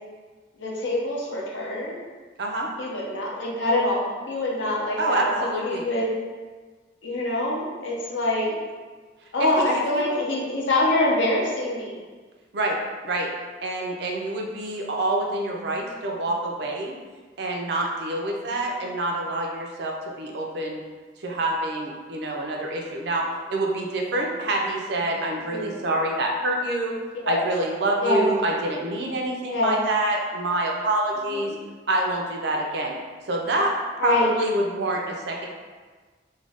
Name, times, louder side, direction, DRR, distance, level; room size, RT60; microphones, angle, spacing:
voice 1, 0.6-2.0 2.8-6.1 7.0-8.5 9.3-12.0 25.5-25.8 27.2-27.4 28.0-28.3 29.5-29.8 31.3-31.5 34.0-34.3, left 2 dB, 70° left, -3 dB, 0.6 m, -25 dB
voice 2, 2.4-2.7 5.0-5.9 9.4-10.2 12.5-12.8 13.0-13.3 13.6-17.0 17.4-20.8 21.2-27.0 27.3-31.5 31.9-33.0 33.3-33.7 34.0-35.5, right 1 dB, 55° right, 0 dB, 0.4 m, -26 dB
2.5 x 2.2 x 3.3 m, 1.4 s
head